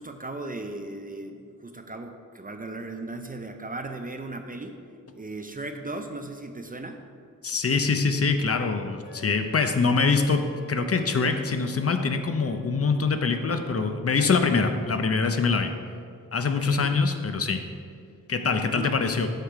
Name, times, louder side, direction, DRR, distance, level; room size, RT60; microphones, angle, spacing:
voice 1, 0.0-4.8 5.1-7.0 16.4-17.0 18.5-18.9, right 2 dB, 25° right, 5 dB, 0.4 m, -37 dB
voice 2, 7.4-10.4 10.7-15.7 16.3-17.6 18.3-19.3, left 4 dB, 45° left, 7 dB, 0.5 m, -24 dB
Wind instrument woodwind instrument, 9.0-14.1, left 3 dB, 80° left, 1.3 m, -48 dB
6.5 x 6.4 x 4.7 m, 2.2 s
wide cardioid pair, 135°, 33 cm